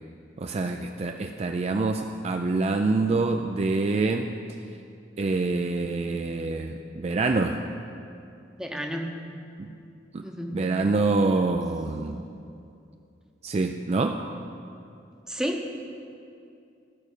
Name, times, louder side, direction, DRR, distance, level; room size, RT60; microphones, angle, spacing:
voice 1, 0.4-4.3 5.2-7.6 9.6-9.7 10.1-10.2 10.5-12.2 13.4-14.2, right 3 dB, 35° right, 4 dB, 0.3 m, -26 dB
voice 2, 8.6-9.1 10.2-10.6 15.3-15.7, equal, 5° right, 2 dB, 0.8 m, -31 dB
14.5 x 5.0 x 6.5 m, 2.5 s
head